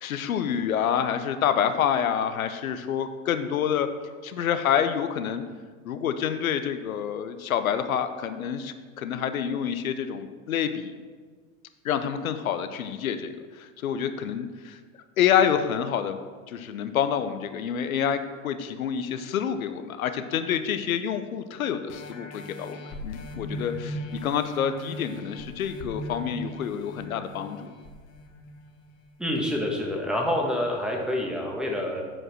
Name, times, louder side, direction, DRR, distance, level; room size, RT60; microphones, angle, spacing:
voice 1, 0.0-3.9 4.2-5.4 5.8-10.9 11.8-14.8 15.2-16.2 16.5-22.8 23.0-27.7, left 8 dB, 85° left, 9 dB, 0.7 m, -27 dB
sound 1, 21.9-29.1 29.6-29.7, equal, 60° left, 1.4 m, -39 dB
voice 2, 29.2-32.0, left 1 dB, ahead, -1 dB, 1.6 m, -27 dB
7.7 x 4.9 x 6.2 m, 1.5 s
hypercardioid pair, 105°, 41 cm